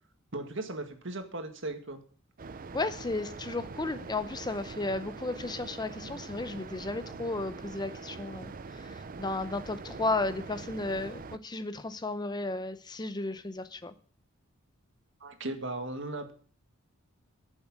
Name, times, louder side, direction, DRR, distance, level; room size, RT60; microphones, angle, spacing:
voice 1, 0.3-2.0 15.2-16.3, right 2 dB, 60° right, 2.0 m, -37 dB
sound 1, 2.4-11.4, right 4 dB, 40° right, 0.5 m, -43 dB
voice 2, 2.7-8.5 8.8-13.9, left 2 dB, 20° left, 0.7 m, -34 dB
10.0 x 7.3 x 8.7 m
head